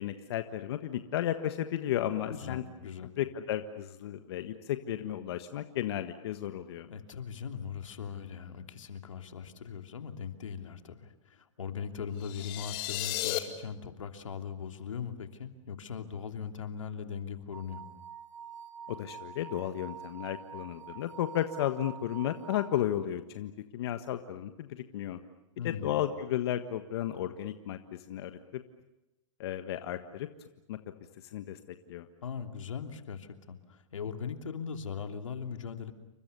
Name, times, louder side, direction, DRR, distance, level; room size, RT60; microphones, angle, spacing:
voice 1, 0.0-2.6 3.2-6.9 18.9-25.2 25.6-27.8 28.1-28.6 29.4-30.3 30.7-30.8 31.3-31.6 31.9-32.1, left 11 dB, 55° left, 8 dB, 1.5 m, -33 dB
voice 2, 2.3-3.1 6.9-17.9 25.6-26.0 32.2-35.9, left 7 dB, 85° left, 6 dB, 3.1 m, -40 dB
sound 1, 12.2-13.4, left 16 dB, 35° left, 2.4 m, -34 dB
sound 2, 17.5-22.7, right 8 dB, 80° right, 5.8 m, -46 dB
29.5 x 25.0 x 6.9 m, 0.93 s
hypercardioid pair, 145°, 16 cm